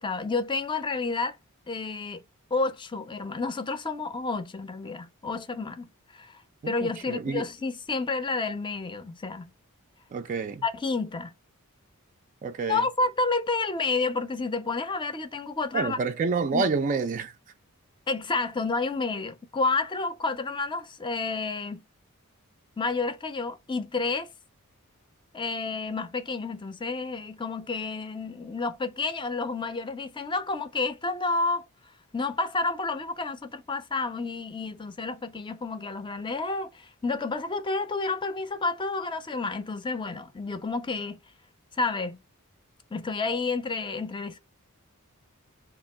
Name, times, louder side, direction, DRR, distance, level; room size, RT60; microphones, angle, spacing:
voice 1, 0.0-1.4 1.7-2.2 2.5-6.3 6.7-9.5 10.6-11.3 12.7-16.0 16.5-16.7 18.1-21.8 22.8-24.3 25.3-31.7 32.1-41.2 41.8-42.2 42.9-44.4, left 3 dB, 20° left, 0.5 m, -30 dB
voice 2, 6.6-7.4 10.1-10.6 12.4-12.8 15.7-17.3, right 4 dB, 35° right, 0.3 m, -28 dB
2.9 x 2.5 x 4.2 m
head